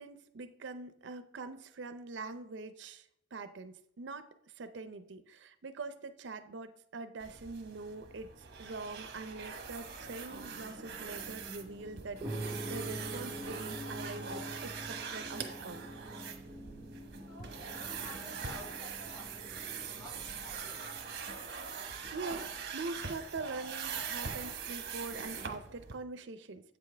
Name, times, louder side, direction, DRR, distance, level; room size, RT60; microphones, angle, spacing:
voice 1, 0.0-15.9 22.1-26.8, right 3 dB, 75° right, 10 dB, 0.5 m, -44 dB
sound 1, 7.2-26.0, right 6 dB, 55° right, 1.0 m, -43 dB
sound 2, 10.3-21.2, right 1 dB, 10° right, 1.0 m, -45 dB
voice 2, 17.3-20.9, left 1 dB, 15° left, -4 dB, 2.3 m, -52 dB
8.2 x 7.0 x 3.3 m, 0.72 s
head